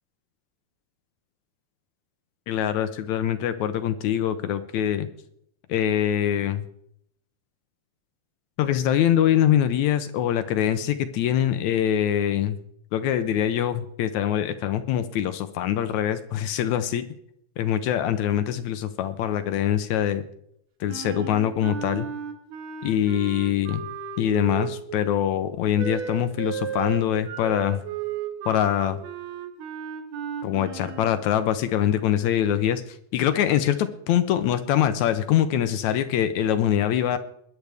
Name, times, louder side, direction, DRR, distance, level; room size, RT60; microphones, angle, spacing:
voice 1, 2.5-5.1 5.7-6.6 8.6-12.6 12.9-17.0 17.6-20.2 20.8-22.1 22.8-23.8 24.2-27.8 28.5-29.0 30.4-32.8 33.1-37.2, left 10 dB, 75° left, 11 dB, 1.8 m, -23 dB
Wind instrument woodwind instrument, 20.9-25.0 25.8-31.2, right 8 dB, 80° right, 2.8 m, -34 dB
21.5 x 10.5 x 3.5 m, 0.72 s
omnidirectional pair, 3.8 m